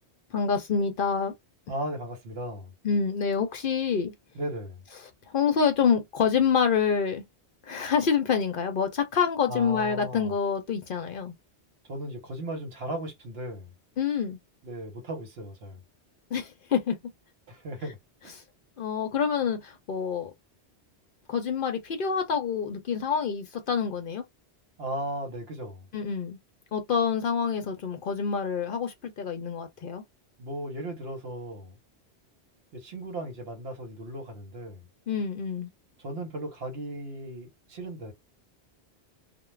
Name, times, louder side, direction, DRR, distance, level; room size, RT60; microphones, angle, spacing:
voice 1, 0.3-1.3 2.8-4.1 5.3-7.2 7.6-11.3 14.0-14.4 16.3-17.0 18.8-20.3 21.3-24.2 25.9-26.4 26.7-30.0 35.1-35.7, left 6 dB, 60° left, 0.7 m, -27 dB
voice 2, 1.7-2.7 4.3-4.8 9.5-10.3 11.9-13.7 14.6-15.8 17.5-18.0 24.8-25.9 30.4-31.7 32.7-34.8 36.0-38.1, right 1 dB, 65° right, 1.1 m, -36 dB
2.3 x 2.2 x 3.1 m
omnidirectional pair, 1.2 m